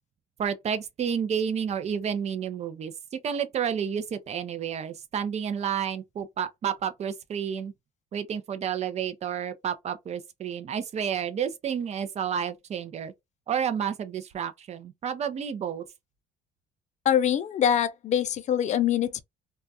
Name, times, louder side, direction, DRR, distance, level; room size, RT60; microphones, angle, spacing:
voice 1, 0.4-2.9 3.2-7.7 8.1-13.1 13.5-15.8, right 8 dB, 40° right, 0.5 m, -30 dB
voice 2, 17.1-19.2, left 9 dB, 45° left, 0.4 m, -24 dB
2.3 x 2.1 x 2.7 m
cardioid pair, 110°, 17 cm